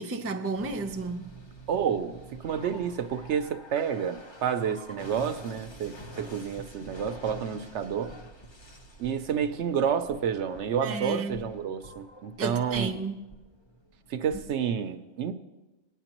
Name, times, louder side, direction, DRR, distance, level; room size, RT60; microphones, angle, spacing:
voice 1, 0.0-1.3 10.8-11.5 12.4-13.2, right 3 dB, 20° right, 0.4 m, -32 dB
sound 1, 0.6-14.8, equal, 25° left, 0.8 m, -47 dB
voice 2, 1.7-8.1 9.0-12.9 14.1-15.3, right 7 dB, 70° right, 0.9 m, -30 dB
19.0 x 9.1 x 3.0 m
omnidirectional pair, 1.3 m